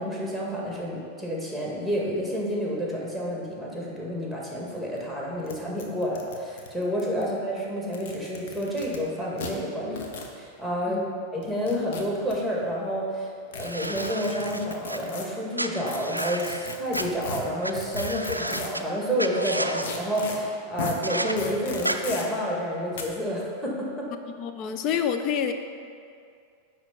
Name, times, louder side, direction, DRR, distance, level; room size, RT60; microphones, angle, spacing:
voice 1, 0.0-10.0 10.4-11.0 11.3-13.3 13.5-24.1, equal, 5° left, -4 dB, 2.0 m, -29 dB
sound 1, 4.7-4.8 5.0-5.1 5.5-5.6 5.8-7.2 7.8-9.0 9.4-9.5 9.9-10.3 11.4-12.3 13.5-15.2 15.9-18.8 19.8-20.4 20.8-20.9 21.4-22.2 22.9-23.0, left 4 dB, 55° left, 1.0 m, -36 dB
sound 2, 13.6-15.0 15.6-17.0 17.6-17.7 18.0-18.8 19.2-19.9 21.0-21.3 21.8-22.0, right 1 dB, 85° right, 0.4 m, -32 dB
voice 2, 24.4-25.5, left 8 dB, 40° left, 8 dB, 0.6 m, -28 dB
10.5 x 3.5 x 7.0 m, 2.3 s
figure-of-eight pair, 90°, 0 cm